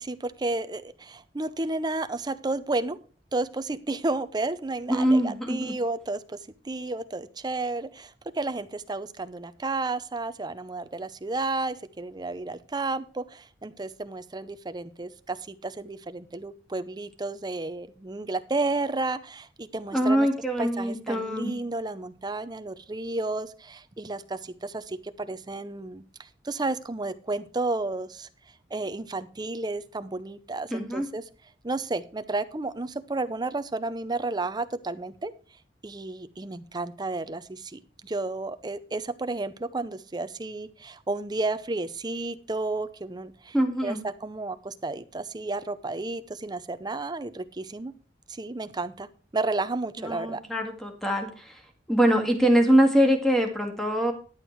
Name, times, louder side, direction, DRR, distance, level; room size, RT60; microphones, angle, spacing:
voice 1, 0.0-3.0 3.3-6.4 6.6-20.3 20.6-28.3 28.7-31.2 31.6-35.3 35.8-43.5 43.8-47.9 48.3-49.1 49.3-50.4, right 2 dB, 25° right, 12 dB, 0.6 m, -32 dB
voice 2, 4.9-5.7 19.9-21.5 30.7-31.1 43.5-44.0 50.0-51.6 51.9-54.1, equal, ahead, 4 dB, 1.9 m, -23 dB
11.0 x 8.2 x 4.6 m, 0.39 s
head